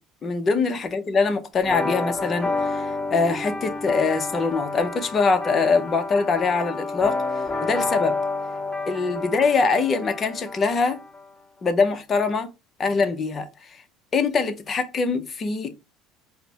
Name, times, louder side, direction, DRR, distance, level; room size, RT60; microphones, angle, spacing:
voice 1, 0.2-8.2 8.9-11.0 11.6-12.5 12.8-13.5 14.1-15.7, left 4 dB, 30° left, 0.7 m, -23 dB
sound 1, 1.6-11.2, left 3 dB, 15° left, 1.6 m, -29 dB
4.9 x 2.1 x 2.8 m
supercardioid pair, 115°, 0 cm